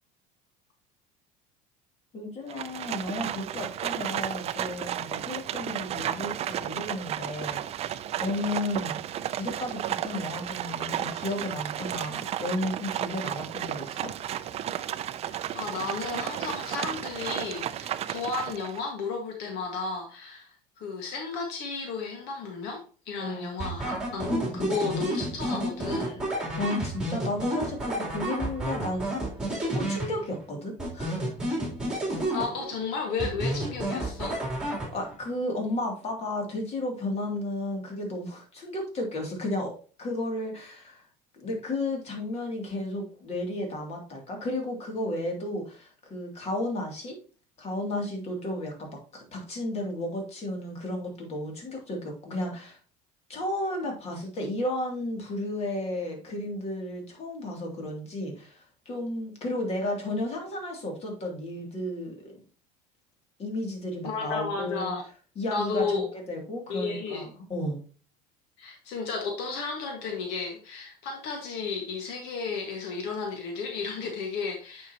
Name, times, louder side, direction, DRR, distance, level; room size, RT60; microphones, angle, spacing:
voice 1, 2.1-9.0 9.4-14.1 23.2-23.7 24.3-24.8 26.6-29.1 29.6-31.3 34.9-39.7 40.0-41.1 41.4-47.2 47.6-52.8 53.3-62.4 63.4-64.9 65.4-67.8, left 1 dB, 35° left, 1 dB, 2.7 m, -33 dB
Livestock farm animals working animals, 2.5-18.9, right 11 dB, 35° right, 0.4 m, -33 dB
voice 2, 15.3-26.2 32.3-34.4 64.0-65.0 65.5-66.1 66.7-67.3 68.6-74.9, left 4 dB, 65° left, 3 dB, 1.6 m, -33 dB
sound 1, 23.6-30.4 30.8-32.8 33.2-35.2, right 1 dB, 5° right, 3.2 m, -31 dB
9.0 x 5.5 x 2.9 m, 0.38 s
cardioid pair, 130°, 18 cm